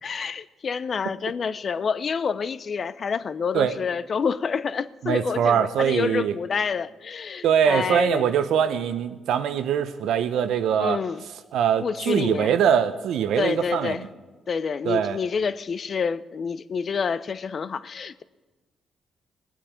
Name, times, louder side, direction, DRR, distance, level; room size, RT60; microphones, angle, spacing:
voice 1, 0.0-8.3 10.8-11.2 11.8-12.5 13.4-14.1 14.5-18.2, left 6 dB, 45° left, 16 dB, 0.5 m, -28 dB
voice 2, 5.0-6.3 7.4-11.0 11.5-14.0 14.8-15.2, right 8 dB, 85° right, 11 dB, 0.8 m, -22 dB
18.5 x 9.1 x 5.0 m, 1.2 s
cardioid pair, 100°, 0 cm